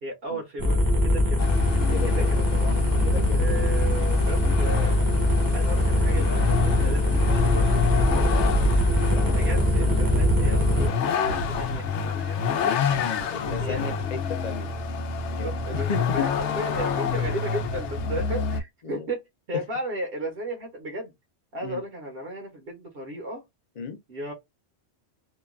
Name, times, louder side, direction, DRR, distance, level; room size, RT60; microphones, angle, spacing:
voice 1, 0.0-1.5 2.0-2.8 3.3-4.9 5.5-8.5 9.3-12.8 13.6-14.1 15.3-19.2 19.5-21.1 21.5-23.4 24.1-24.3, right 1 dB, 60° right, 1.0 m, -35 dB
sound 1, 0.6-10.9, left 1 dB, 25° right, 0.6 m, -22 dB
Vehicle, 1.4-18.6, left 5 dB, 90° left, 0.9 m, -28 dB
voice 2, 1.9-2.3 3.0-3.4 6.8-7.0 9.1-9.7 13.3-14.7 15.3-15.5 15.9-16.3 18.8-19.1 21.6-21.8 23.8-24.0, left 6 dB, 50° left, 0.5 m, -34 dB
2.9 x 2.2 x 2.3 m
omnidirectional pair, 1.2 m